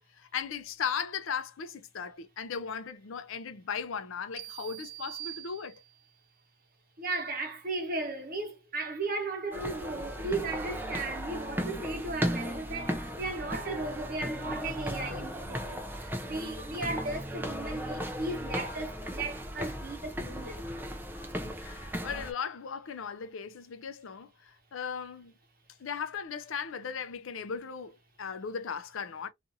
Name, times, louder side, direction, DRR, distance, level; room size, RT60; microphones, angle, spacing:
voice 1, 0.0-5.8 11.6-11.8 21.6-25.3 25.8-29.3, left 6 dB, 75° left, 0.5 m, -37 dB
sound 1, 4.4-6.2, right 17 dB, 90° right, 0.5 m, -44 dB
voice 2, 7.0-20.7, right 2 dB, 45° right, 1.0 m, -36 dB
sound 2, 9.5-22.3, equal, 10° right, 0.4 m, -36 dB
2.5 x 2.5 x 2.6 m
head